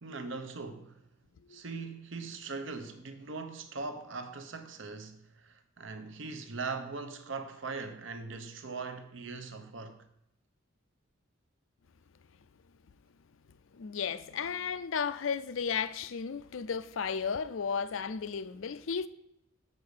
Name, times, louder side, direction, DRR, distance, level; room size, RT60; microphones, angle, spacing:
voice 1, 0.0-1.1 1.5-10.0, right 4 dB, 65° right, 0.8 m, -40 dB
voice 2, 13.7-19.1, left 6 dB, 75° left, 0.5 m, -34 dB
7.5 x 5.2 x 6.6 m
head